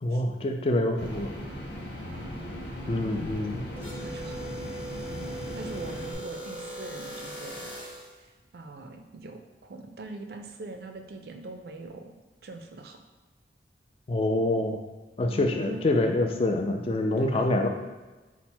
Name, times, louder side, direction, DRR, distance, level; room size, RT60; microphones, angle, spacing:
voice 1, 0.0-1.3 2.9-3.6 14.1-14.8 15.2-17.7, left 2 dB, 30° left, 3 dB, 0.3 m, -26 dB
sound 1, 1.0-6.1, equal, 75° left, 0.8 m, -38 dB
voice 2, 2.0-2.6 3.9-4.5 5.5-7.8 8.2-12.2 12.4-13.0 15.3-15.8 17.2-17.5, right 2 dB, 60° right, 5 dB, 0.4 m, -42 dB
sound 2, 3.8-8.2, right 1 dB, 10° left, 0.7 m, -39 dB
4.1 x 2.1 x 4.3 m, 1.2 s
head